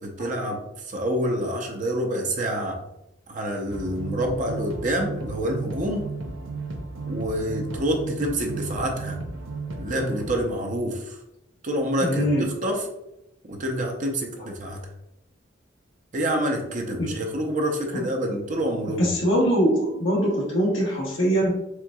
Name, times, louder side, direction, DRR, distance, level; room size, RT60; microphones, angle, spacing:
voice 1, 0.0-2.8 3.3-6.0 7.1-9.2 9.8-11.2 11.6-12.9 13.5-14.9 16.1-19.1, right 1 dB, 45° right, 1 dB, 0.6 m, -27 dB
sound 1, 3.7-10.4, right 3 dB, 85° right, 0.6 m, -34 dB
voice 2, 12.0-12.4 17.9-18.1 19.0-21.6, equal, 70° left, -4 dB, 0.8 m, -22 dB
4.4 x 3.6 x 2.3 m, 0.87 s
head